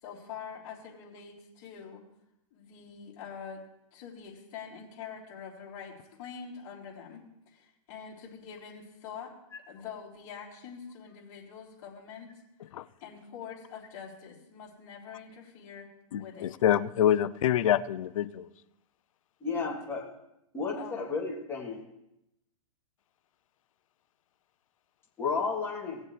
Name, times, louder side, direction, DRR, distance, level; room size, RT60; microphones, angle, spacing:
voice 1, 0.0-2.0 2.5-3.6 3.9-9.3 9.7-12.4 13.0-15.9 16.1-16.5 20.7-21.1, left 7 dB, 40° left, -4 dB, 3.5 m, -45 dB
voice 2, 16.1-18.5, left 10 dB, 70° left, 16 dB, 0.6 m, -26 dB
voice 3, 19.4-20.0 20.5-21.8 25.2-26.0, left 4 dB, 15° left, -5 dB, 3.1 m, -32 dB
18.5 x 7.3 x 3.3 m, 0.85 s
hypercardioid pair, 135°, 18 cm